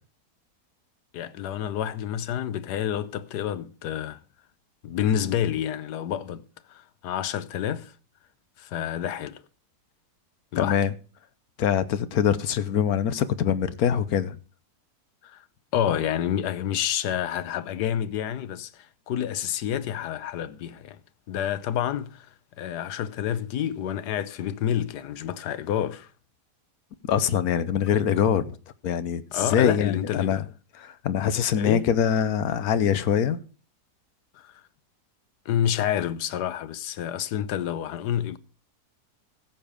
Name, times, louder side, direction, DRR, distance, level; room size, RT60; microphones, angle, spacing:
voice 1, 1.1-4.2 4.8-7.9 8.6-9.4 10.5-10.8 15.2-15.4 15.7-21.0 21.3-22.3 22.6-26.1 29.3-30.4 31.5-31.9 34.3-34.6 35.4-38.4, left 10 dB, 90° left, 1.3 m, -29 dB
voice 2, 10.5-10.9 11.6-14.4 27.0-28.6 28.8-30.4 30.7-33.4, left 8 dB, 70° left, 1.3 m, -24 dB
15.5 x 7.0 x 5.0 m
omnidirectional pair, 1.7 m